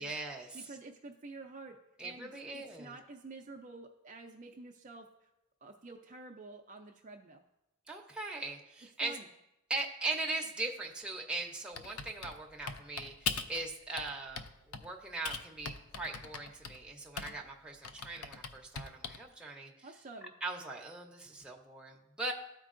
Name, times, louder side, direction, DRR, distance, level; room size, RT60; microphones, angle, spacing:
voice 1, 0.0-0.5 2.0-2.9 7.9-9.2 9.7-19.7 20.4-22.3, right 2 dB, 5° right, -1 dB, 0.7 m, -40 dB
voice 2, 0.5-1.8 2.0-5.3 5.6-7.4 9.0-9.3 19.8-20.3, right 3 dB, 35° right, 3 dB, 0.4 m, -49 dB
Typing, 11.8-13.6 14.0-14.9 15.2-17.5 17.8-19.3, left 5 dB, 90° left, 0.5 m, -40 dB
13.5 x 4.5 x 2.5 m, 0.91 s
head